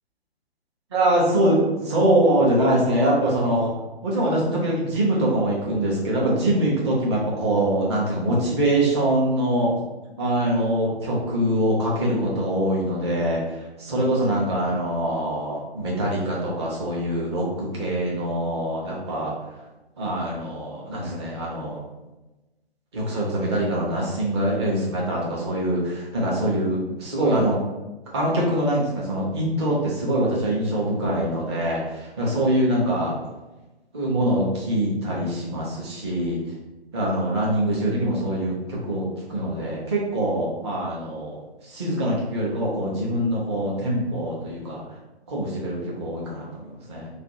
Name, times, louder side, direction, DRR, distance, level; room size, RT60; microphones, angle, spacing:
voice 1, 0.9-3.7 4.0-9.7 10.2-13.4 13.8-19.3 20.0-21.8 22.9-27.6 28.1-33.2 33.9-36.4 36.9-44.8 45.3-47.1, right 1 dB, 25° right, -4 dB, 0.8 m, -24 dB
2.5 x 2.3 x 4.0 m, 1.1 s
figure-of-eight pair, 135°, 31 cm